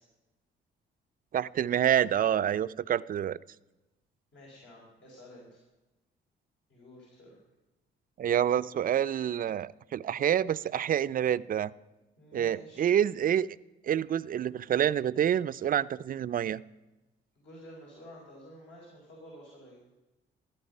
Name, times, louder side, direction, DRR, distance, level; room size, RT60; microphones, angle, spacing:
voice 1, 1.3-3.4 8.2-11.7 12.3-13.5 13.8-16.6, right 10 dB, 45° right, 16 dB, 0.4 m, -27 dB
voice 2, 4.3-5.6 6.7-7.4 12.2-12.9 17.3-19.8, equal, 65° left, -3 dB, 4.7 m, -51 dB
15.0 x 12.0 x 5.4 m, 1.0 s
cardioid pair, 90°, 20 cm